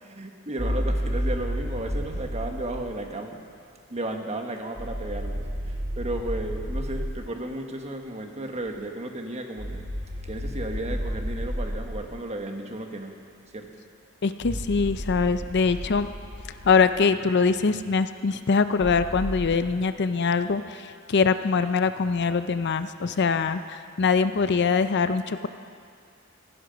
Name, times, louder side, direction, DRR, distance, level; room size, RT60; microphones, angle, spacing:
voice 1, 0.0-3.4 3.9-9.8 10.2-13.1 13.5-13.7, right 1 dB, 30° right, 4 dB, 1.3 m, -34 dB
sound 1, 0.6-2.9 4.8-7.3 9.6-12.2 14.4-17.0 18.8-19.5, equal, 80° right, 3.1 m, -31 dB
voice 2, 14.2-16.1 16.6-25.5, left 5 dB, 55° left, 11 dB, 0.5 m, -23 dB
16.0 x 16.0 x 5.2 m, 2.2 s
head